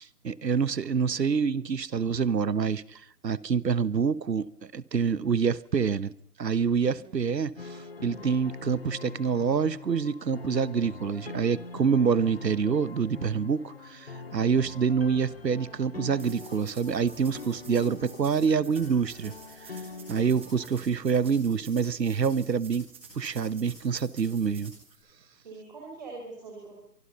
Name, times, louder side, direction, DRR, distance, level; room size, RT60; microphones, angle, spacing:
voice 1, 0.0-6.1 6.4-7.5 8.0-19.3 19.7-19.8 20.1-22.9 23.1-24.7, right 6 dB, 85° right, 1.3 m, -26 dB
voice 2, 6.7-7.2 25.4-26.8, right 3 dB, 25° right, 5.2 m, -44 dB
sound 1, 7.6-20.7, left 4 dB, 35° left, 1.5 m, -43 dB
sound 2, 16.2-25.0, right 4 dB, 10° right, 1.6 m, -51 dB
24.5 x 24.0 x 5.4 m
hypercardioid pair, 180°, 49 cm